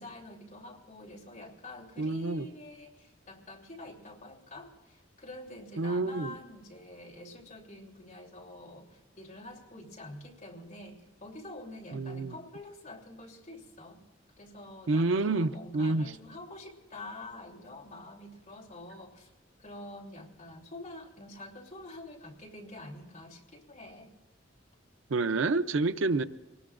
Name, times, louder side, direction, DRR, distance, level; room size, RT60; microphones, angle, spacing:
voice 1, 0.0-14.0 14.4-19.3 19.6-24.1, left 1 dB, 40° left, 3.1 m, -47 dB
voice 2, 2.0-2.5 5.8-6.4 11.9-12.3 14.9-16.1 25.1-26.2, right 3 dB, 85° right, 0.6 m, -28 dB
24.0 x 19.5 x 2.5 m
head